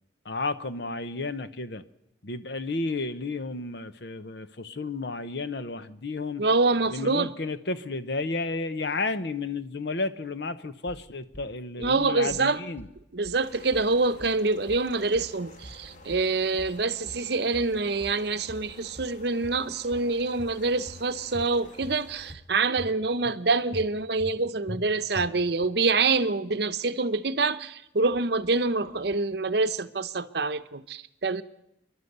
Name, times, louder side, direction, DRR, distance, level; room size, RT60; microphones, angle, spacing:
voice 1, 0.2-1.8 2.2-6.4 6.9-12.9, left 3 dB, 60° left, 0.9 m, -32 dB
voice 2, 6.4-7.3 11.8-12.6 13.1-31.4, right 3 dB, 60° right, 0.8 m, -26 dB
sound 1, 10.9-11.5 11.8-12.5 12.8-13.5 13.7-14.4 14.7-15.4 15.6-16.3 16.6-17.3 17.5-18.2 18.5-19.2 19.4-20.1 20.4-21.0 21.3-22.0 22.3-22.9 23.2-23.4 23.7-24.4 24.7-24.8 25.2-25.7, left 1 dB, 10° left, 0.8 m, -43 dB
sound 2, 13.3-22.4, left 2 dB, 45° left, 1.5 m, -50 dB
28.0 x 11.5 x 8.1 m
head